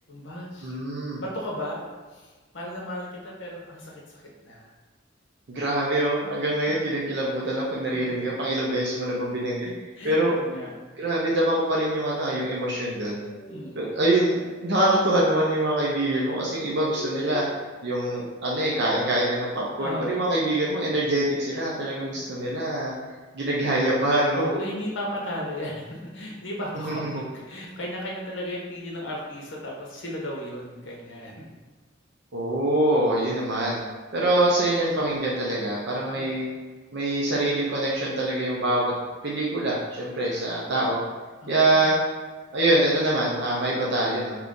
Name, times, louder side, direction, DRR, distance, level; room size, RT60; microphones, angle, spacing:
voice 1, 0.1-0.7 1.2-2.3 2.5-4.7 7.9-8.1 9.6-10.7 13.5-14.1 19.8-20.2 24.3-31.5 36.1-36.5 41.4-41.9, equal, 70° left, -2 dB, 0.8 m, -35 dB
voice 2, 0.6-1.2 5.5-9.7 10.0-10.4 11.0-13.2 13.8-17.4 17.8-22.9 23.3-24.5 26.8-27.2 32.3-33.8 34.1-36.5 36.9-38.9 39.2-41.0 41.5-42.0 42.5-44.3, right 1 dB, 65° right, -5 dB, 0.6 m, -24 dB
sound 1, 12.3-19.5, equal, 25° left, 0.9 m, -43 dB
2.9 x 2.5 x 3.6 m, 1.4 s
head